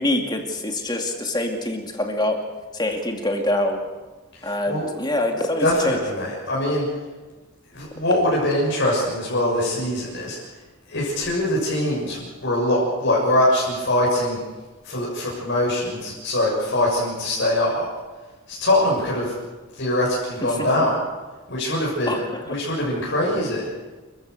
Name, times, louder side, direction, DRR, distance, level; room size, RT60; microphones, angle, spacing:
voice 1, 0.0-2.4 2.7-3.8 4.4-6.0 20.6-20.7 22.1-22.4, left 1 dB, 20° left, 3 dB, 2.3 m, -25 dB
voice 2, 4.4-4.9 5.6-6.9 7.7-10.4 10.9-14.4 14.8-17.8 18.5-19.3 19.8-21.0 21.5-22.1 22.5-23.7, left 1 dB, 55° left, -4 dB, 6.7 m, -22 dB
29.5 x 15.0 x 6.6 m, 1.2 s
head